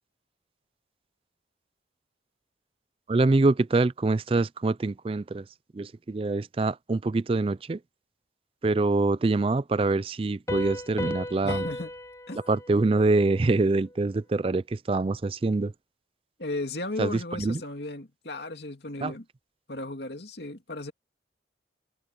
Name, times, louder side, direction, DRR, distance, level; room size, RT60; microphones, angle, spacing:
voice 1, 3.1-5.4 5.7-7.8 8.6-11.7 12.5-15.7 17.0-17.6 19.0-19.1, right 3 dB, 30° right, 0.4 m, -25 dB
Piano, 10.5-13.9, left 1 dB, 15° left, 0.6 m, -36 dB
voice 2, 11.4-11.9 12.3-12.4 15.0-15.1 16.4-19.2 19.7-20.9, left 2 dB, 65° left, 2.5 m, -35 dB
head